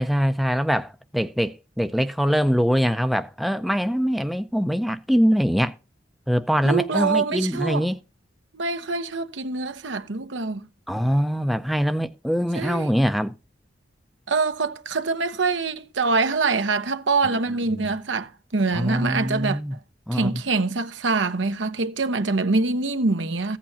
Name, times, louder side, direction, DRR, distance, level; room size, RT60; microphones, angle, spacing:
voice 1, 0.0-5.8 6.3-8.0 10.9-13.3 17.3-17.4 17.7-17.9 18.7-19.7 20.1-20.4, equal, ahead, 0.4 m, -23 dB
voice 2, 6.6-7.9 8.5-10.6 12.5-12.9 14.3-19.6 20.1-23.6, right 3 dB, 85° right, 1.0 m, -24 dB
15.0 x 8.6 x 2.8 m
head